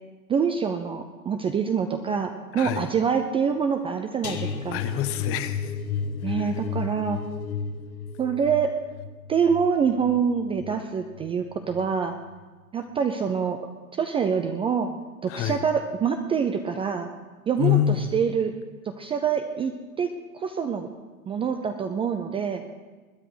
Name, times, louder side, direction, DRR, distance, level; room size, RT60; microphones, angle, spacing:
voice 1, 0.3-4.8 6.2-7.2 8.2-8.7 9.3-12.1 12.7-13.6 13.9-14.9 15.2-17.1 17.5-18.5 18.8-20.1 20.3-20.9 21.3-22.6, right 6 dB, 15° right, 6 dB, 0.5 m, -25 dB
voice 2, 2.5-2.9 4.7-5.8 6.3-6.6 15.3-15.6 17.6-18.2, left 11 dB, 30° left, 12 dB, 0.9 m, -26 dB
sound 1, 4.2-11.3 11.7-12.0 12.3-12.4, left 6 dB, 80° left, 1.5 m, -33 dB
20.5 x 9.9 x 5.0 m, 1.3 s
hypercardioid pair, 110°, 43 cm